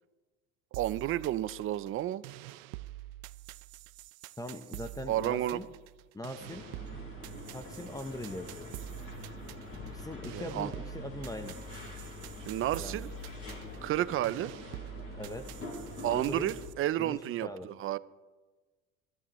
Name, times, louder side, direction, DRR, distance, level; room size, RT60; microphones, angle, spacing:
voice 1, 0.7-2.2 5.1-5.6 10.3-10.7 12.5-13.1 13.8-14.5 16.0-18.0, right 13 dB, 30° right, 17 dB, 0.4 m, -31 dB
sound 1, 0.7-16.7, right 17 dB, 80° right, 0.6 m, -47 dB
voice 2, 4.4-5.7 6.1-6.6 7.5-8.7 9.8-11.6 12.7-13.1 15.2-15.4 16.1-16.5 17.0-17.7, left 1 dB, 10° left, 9 dB, 0.8 m, -41 dB
sound 2, 6.4-16.7, left 2 dB, 30° left, 5.1 m, -45 dB
21.0 x 13.0 x 3.1 m, 1.3 s
supercardioid pair, 110°, 42 cm